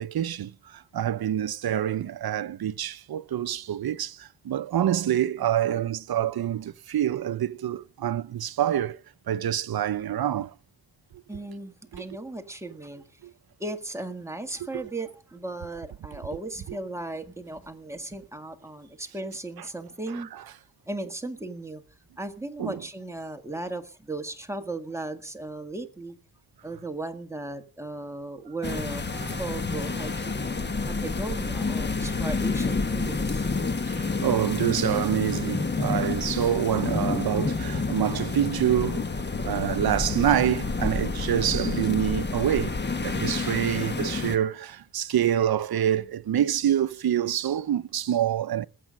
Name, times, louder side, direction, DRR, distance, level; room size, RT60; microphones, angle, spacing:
voice 1, 0.0-9.0 9.3-10.5 11.9-12.0 13.2-13.3 14.7-14.8 16.1-16.2 22.6-22.7 29.2-29.3 33.9-39.1 39.4-48.7, right 10 dB, 60° right, 0.7 m, -26 dB
voice 2, 11.3-13.2 13.6-20.3 20.9-21.8 22.2-26.2 26.6-33.4 43.2-43.3, right 2 dB, 5° right, 1.8 m, -36 dB
sound 1, 28.6-44.4, left 3 dB, 25° left, 1.1 m, -29 dB
19.5 x 8.5 x 6.4 m
wide cardioid pair, 155°, 40 cm